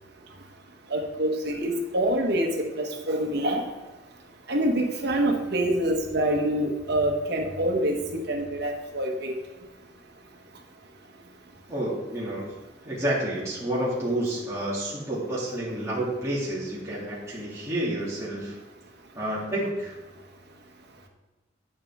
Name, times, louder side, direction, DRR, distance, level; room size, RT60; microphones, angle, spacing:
voice 1, 0.9-2.5 2.8-3.6 4.5-9.3, right 1 dB, 65° right, 2 dB, 1.4 m, -26 dB
voice 2, 11.7-12.5 12.8-18.5 19.1-19.9, right 1 dB, 15° right, -8 dB, 2.7 m, -29 dB
9.1 x 8.8 x 3.7 m, 1.2 s
head